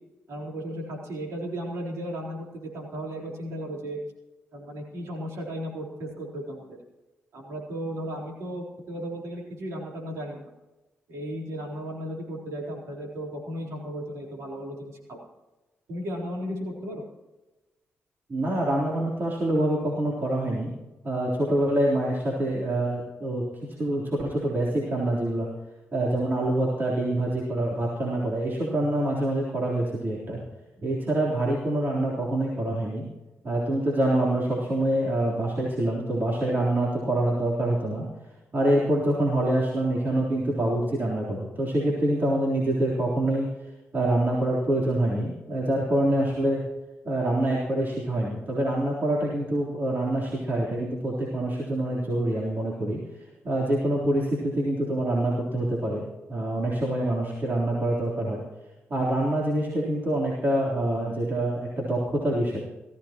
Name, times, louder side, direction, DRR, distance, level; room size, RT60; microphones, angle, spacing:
voice 1, 0.3-4.0 4.5-6.7 7.3-10.5 11.1-15.3 15.9-17.0, equal, 90° right, -1 dB, 4.0 m, -35 dB
voice 2, 18.3-20.7 21.0-23.4 23.8-25.5 25.9-30.4 30.8-33.1 33.4-38.1 38.5-43.5 43.9-46.6 47.1-53.0 53.4-56.0 56.3-58.4 58.9-62.6, right 1 dB, 45° right, -4 dB, 3.6 m, -26 dB
19.0 x 15.0 x 3.0 m, 1.1 s
cardioid pair, 80°, 5 cm